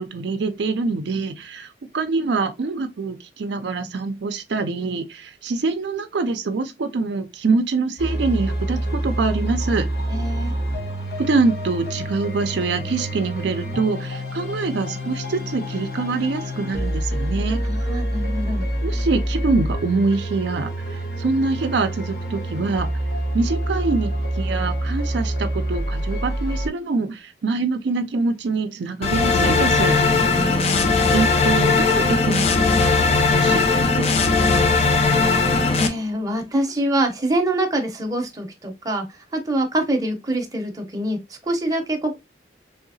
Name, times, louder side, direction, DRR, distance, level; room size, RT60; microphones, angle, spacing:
voice 1, 0.0-9.9 11.2-17.6 18.8-22.9 23.3-30.0 31.1-32.5 33.4-34.2, right 3 dB, 75° right, 0.4 m, -24 dB
sound 1, 8.0-26.7, right 1 dB, 60° left, 1.1 m, -27 dB
voice 2, 10.1-10.5 17.6-18.6 30.3-30.8 35.8-42.2, right 1 dB, 20° right, 0.7 m, -25 dB
sound 2, 29.0-35.9, left 4 dB, 35° left, 0.4 m, -18 dB
3.4 x 2.7 x 2.6 m
head